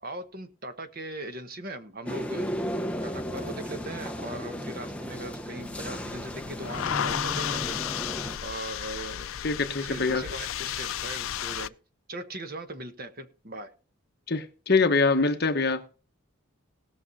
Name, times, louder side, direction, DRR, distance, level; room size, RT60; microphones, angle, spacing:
voice 1, 0.0-2.5 3.0-7.8 8.4-9.3 9.8-11.7 12.1-13.7, right 1 dB, 45° right, 1.2 m, -39 dB
sound 1, 2.1-8.4, equal, 5° left, 0.7 m, -34 dB
sound 2, 5.6-11.7, left 10 dB, 70° left, 0.4 m, -33 dB
voice 2, 9.4-10.2 14.3-16.0, left 3 dB, 45° left, 1.1 m, -24 dB
19.0 x 6.3 x 4.1 m
head